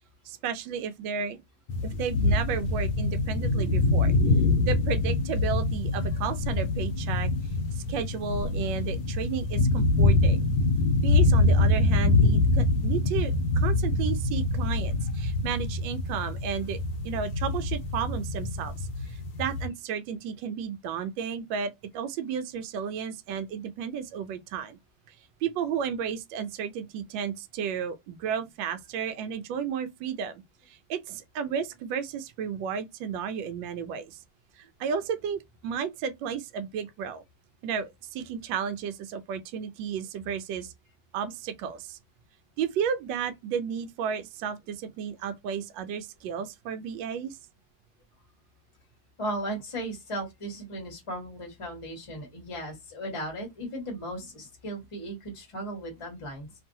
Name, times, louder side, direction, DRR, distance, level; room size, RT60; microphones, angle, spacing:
voice 1, 0.2-1.4 1.8-4.1 4.6-7.3 7.7-10.5 11.0-24.8 25.1-25.2 25.4-34.2 34.6-37.2 37.6-40.7 41.1-42.0 42.6-47.4, right 7 dB, 75° right, 1.2 m, -33 dB
sound 1, 1.7-19.7, left 2 dB, 75° left, 1.3 m, -25 dB
voice 2, 49.2-56.5, right 1 dB, 20° left, 1.1 m, -36 dB
3.0 x 2.6 x 2.7 m
omnidirectional pair, 2.2 m